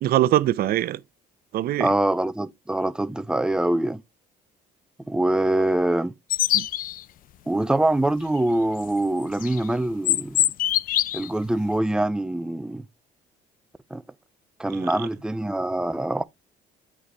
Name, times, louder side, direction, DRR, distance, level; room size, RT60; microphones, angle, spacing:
voice 1, 0.0-1.0 1.5-1.9 6.5-6.7 14.7-14.9, right 13 dB, 60° right, 0.6 m, -22 dB
voice 2, 1.8-4.0 5.1-6.1 7.5-10.5 11.1-12.8 13.9-14.0 14.6-16.2, right 1 dB, 5° right, 0.5 m, -24 dB
sound 1, 6.3-7.0 9.2-9.6 10.0-11.3, left 12 dB, 55° left, 0.4 m, -23 dB
8.9 x 4.8 x 2.9 m
cardioid pair, 110°, 17 cm